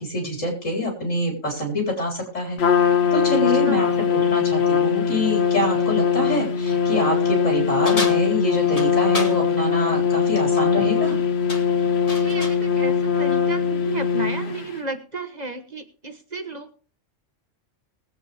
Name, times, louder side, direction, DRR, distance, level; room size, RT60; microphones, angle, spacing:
voice 1, 0.0-2.6 3.1-11.2, left 1 dB, 90° left, 0 dB, 4.2 m, -25 dB
Trumpet, 2.6-14.7, left 7 dB, 60° left, 1.1 m, -21 dB
voice 2, 3.6-4.0 12.1-16.8, right 3 dB, 35° right, 6 dB, 1.3 m, -33 dB
sound 1, 7.8-9.4 10.9-11.2 11.5-12.6, left 2 dB, 30° left, 1.4 m, -31 dB
20.5 x 8.1 x 3.4 m, 0.38 s
omnidirectional pair, 1.3 m